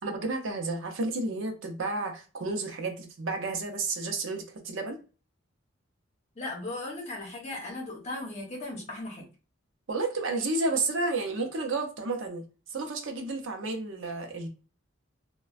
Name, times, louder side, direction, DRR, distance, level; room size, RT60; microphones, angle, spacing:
voice 1, 0.0-5.0 9.9-12.4 12.7-14.5, right 3 dB, 70° right, 4 dB, 0.6 m, -31 dB
voice 2, 6.4-9.3, left 2 dB, 35° left, 0 dB, 0.8 m, -37 dB
3.2 x 2.2 x 2.4 m, 0.33 s
head